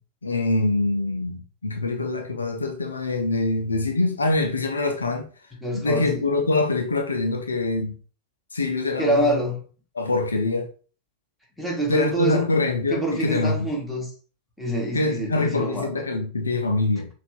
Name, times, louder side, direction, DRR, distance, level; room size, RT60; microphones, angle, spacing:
voice 1, 0.2-5.3 5.7-8.0 8.5-9.5 9.9-10.7 11.9-13.6 14.9-17.1, left 3 dB, 75° left, 0.5 m, -24 dB
voice 2, 5.6-6.2 9.0-9.6 11.6-12.5 12.9-14.1 14.6-15.9, right 1 dB, ahead, 1.3 m, -26 dB
5.7 x 2.5 x 2.4 m
figure-of-eight pair, 90°, 0 cm